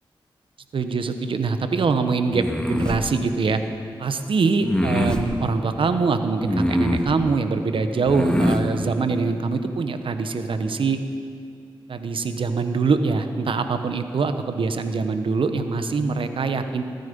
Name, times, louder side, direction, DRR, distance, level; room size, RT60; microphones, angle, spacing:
voice 1, 0.7-3.6 4.0-11.0 11.9-16.8, right 4 dB, 70° right, 8 dB, 1.0 m, -23 dB
sound 1, 2.3-3.0 4.6-5.3 6.4-7.1 8.0-8.6, equal, 10° left, 1.7 m, -23 dB
21.0 x 10.5 x 5.4 m, 2.3 s
cardioid pair, 50°, 9 cm